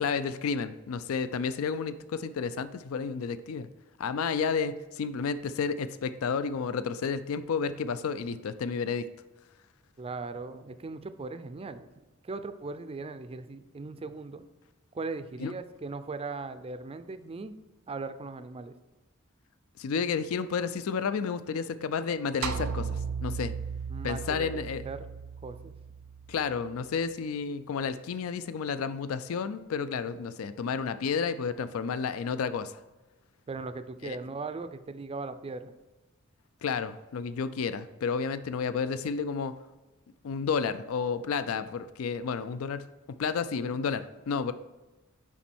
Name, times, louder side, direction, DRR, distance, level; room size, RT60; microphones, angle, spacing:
voice 1, 0.0-3.7 4.0-9.1 15.4-15.5 19.8-23.5 24.0-24.8 26.3-32.7 34.0-34.2 36.6-39.5 40.2-44.5, left 5 dB, 75° left, 13 dB, 0.4 m, -31 dB
voice 2, 10.0-11.9 12.2-14.4 14.9-17.5 17.9-18.7 23.9-25.1 25.4-25.7 33.5-35.7, right 3 dB, 25° right, 11 dB, 0.4 m, -38 dB
sound 1, 22.4-26.8, right 6 dB, 80° right, 0.5 m, -36 dB
7.1 x 5.3 x 4.3 m, 1.1 s
head